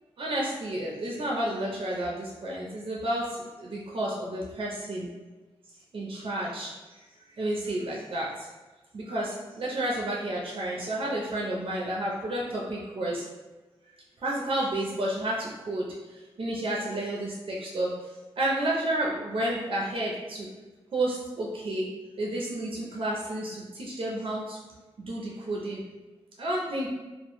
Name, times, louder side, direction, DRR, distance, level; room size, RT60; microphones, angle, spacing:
voice 1, 0.2-3.2 3.6-5.1 5.9-6.7 7.4-8.3 8.9-13.2 14.2-15.9 16.4-17.9 18.4-20.5 20.9-21.8 22.2-24.6 25.1-25.8 26.4-26.9, right 1 dB, 60° right, -3 dB, 0.4 m, -31 dB
2.0 x 2.0 x 2.9 m, 1.2 s
cardioid pair, 50°, 11 cm